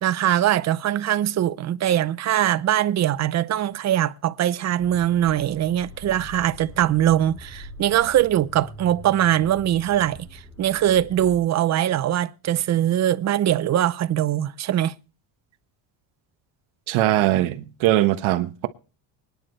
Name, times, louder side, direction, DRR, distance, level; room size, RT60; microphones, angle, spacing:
voice 1, 0.0-10.2 10.6-14.9, right 11 dB, 35° right, 0.6 m, -22 dB
Accelerating revving vroom, 4.8-11.4, right 1 dB, ahead, 4.8 m, -43 dB
voice 2, 16.9-18.7, right 14 dB, 80° right, 1.3 m, -21 dB
24.0 x 10.5 x 3.2 m
cardioid pair, 145°, 47 cm